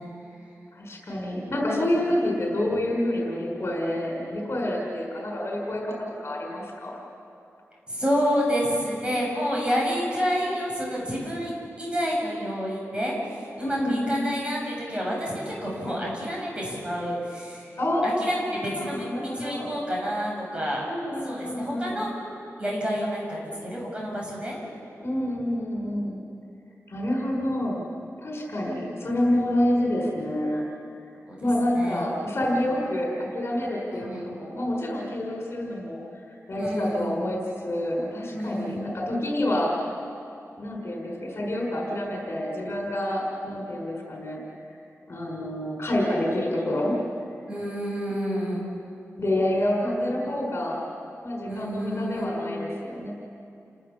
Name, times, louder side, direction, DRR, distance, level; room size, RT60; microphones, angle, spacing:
voice 1, 0.7-6.9 13.6-14.4 17.8-19.7 20.9-22.0 25.0-26.2 26.9-27.8 28.2-30.6 31.4-39.7 40.6-44.4 45.1-47.0 49.2-50.8 51.2-53.1, left 1 dB, 50° left, -1 dB, 5.8 m, -28 dB
voice 2, 7.9-17.7 18.0-20.8 21.2-22.1 22.6-24.6 31.2-31.4 31.7-32.0 33.9-34.3 36.6-37.1 38.3-38.9 47.5-48.6 51.5-52.3, equal, 20° right, -3 dB, 7.6 m, -29 dB
30.0 x 19.0 x 7.3 m, 2.6 s
wide cardioid pair, 130°, 5 cm